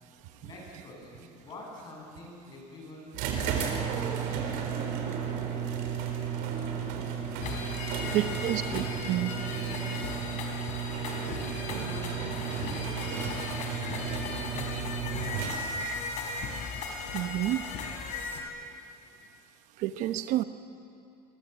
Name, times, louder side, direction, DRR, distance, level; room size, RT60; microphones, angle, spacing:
voice 1, 0.4-4.9 7.9-8.6 9.5-15.4 19.0-19.2, left 1 dB, 30° left, -1 dB, 7.8 m, -48 dB
sound 1, 3.1-15.9, right 7 dB, 85° right, 4.0 m, -33 dB
sound 2, 7.4-18.4, left 4 dB, 60° left, 4.8 m, -37 dB
voice 2, 8.1-9.3 17.1-17.6 19.8-20.4, right 14 dB, 60° right, 10 dB, 1.0 m, -29 dB
28.5 x 22.0 x 8.3 m, 2.6 s
cardioid pair, 165°, 14 cm